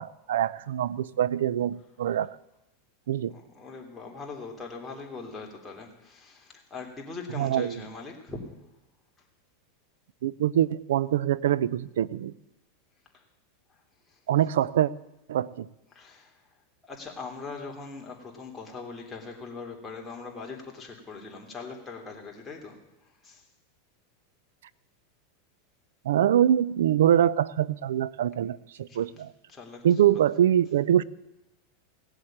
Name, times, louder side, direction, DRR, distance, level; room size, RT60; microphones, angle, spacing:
voice 1, 0.0-2.3 3.1-3.3 7.4-7.8 10.2-12.3 14.3-14.9 15.3-15.7 26.0-29.3 29.8-31.0, right 10 dB, 85° right, 20 dB, 0.5 m, -24 dB
voice 2, 3.3-8.5 13.1-13.2 14.1-14.2 15.9-16.4 16.9-23.5 28.9-29.1 29.5-29.8, left 4 dB, 15° left, -1 dB, 3.2 m, -41 dB
17.5 x 8.0 x 8.8 m, 0.94 s
supercardioid pair, 135°, 0 cm